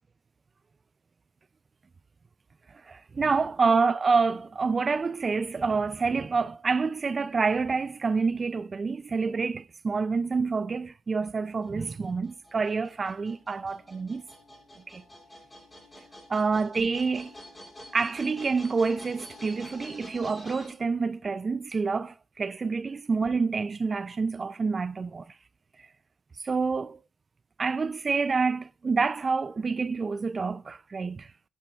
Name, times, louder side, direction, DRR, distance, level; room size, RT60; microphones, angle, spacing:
voice 1, 2.7-14.2 14.8-15.0 16.3-17.3 17.9-25.4 25.8-25.9 26.4-27.0 27.6-31.3, right 4 dB, 35° right, 0.3 m, -27 dB
sound 1, 11.6-20.7, equal, 20° left, 3.5 m, -48 dB
12.5 x 8.9 x 2.4 m
cardioid pair, 85°, 0 cm